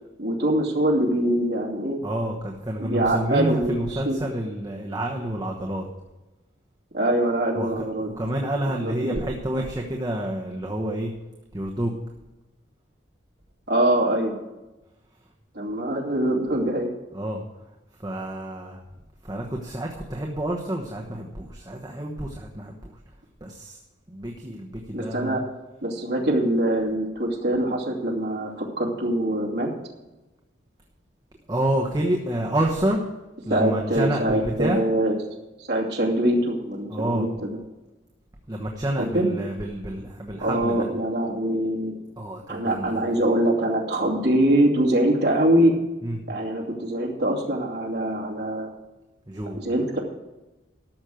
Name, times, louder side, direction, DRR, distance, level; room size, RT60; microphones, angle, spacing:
voice 1, 0.2-2.0 2.8-4.2 6.9-8.1 8.7-9.2 13.7-14.4 15.5-16.9 24.9-25.4 25.8-29.7 33.5-35.1 35.6-37.5 39.0-39.3 40.4-41.9 42.5-45.7 46.3-48.7 49.5-50.0, right 1 dB, 60° right, -2 dB, 2.4 m, -23 dB
voice 2, 2.0-5.9 7.6-11.1 11.5-11.9 17.1-17.7 18.0-18.8 19.2-23.0 23.4-23.8 24.1-25.4 31.5-33.0 33.5-34.8 36.9-37.3 38.5-40.9 42.2-43.1 46.0-46.2 49.3-49.6, right 1 dB, 20° right, 0 dB, 1.1 m, -29 dB
13.5 x 6.3 x 7.7 m, 1.0 s
head